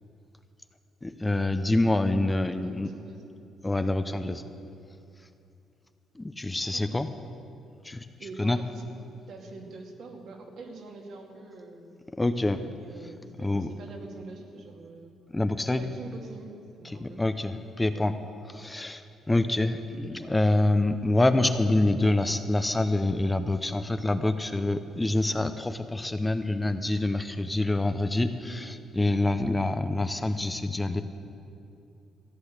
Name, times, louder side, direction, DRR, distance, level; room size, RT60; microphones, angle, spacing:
voice 1, 1.0-2.9 3.6-4.4 6.2-7.1 7.8-8.1 8.4-8.6 12.2-12.6 13.4-13.7 15.3-15.8 17.0-18.1 18.5-19.0 19.3-31.0, left 2 dB, 15° left, 9 dB, 0.8 m, -26 dB
voice 2, 2.6-3.2 6.7-7.0 8.2-8.8 9.3-11.9 12.4-15.1 15.8-16.5 16.8-17.2 17.8-18.1 19.3-19.4 22.0-22.1, right 3 dB, 70° right, 1 dB, 2.4 m, -45 dB
14.5 x 9.9 x 8.2 m, 2.6 s
cardioid pair, 90°, 0 cm